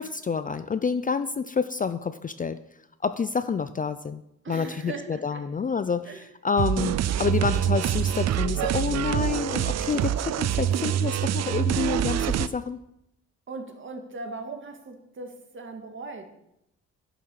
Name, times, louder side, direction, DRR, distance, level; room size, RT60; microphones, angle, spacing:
voice 1, 0.0-2.6 3.0-4.2 4.5-12.8, left 5 dB, 25° left, 12 dB, 0.5 m, -28 dB
voice 2, 4.4-5.4 6.1-6.3 13.5-16.3, right 3 dB, 40° right, 4 dB, 2.1 m, -39 dB
sound 1, 6.6-12.5, right 10 dB, 60° right, 0.5 m, -25 dB
11.0 x 7.2 x 6.5 m, 0.80 s
cardioid pair, 90°, 30 cm